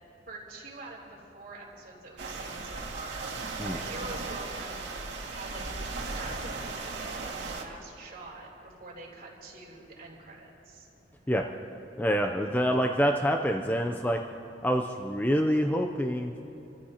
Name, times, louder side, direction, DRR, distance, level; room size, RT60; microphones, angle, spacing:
voice 1, 0.3-3.2 3.7-4.9 5.2-10.9, right 2 dB, 55° right, -3 dB, 3.4 m, -45 dB
sound 1, 2.2-7.6, right 3 dB, 90° right, 2.1 m, -36 dB
voice 2, 12.0-14.2 14.6-16.3, equal, 10° left, 3 dB, 0.5 m, -26 dB
27.5 x 14.5 x 2.9 m, 3.0 s
head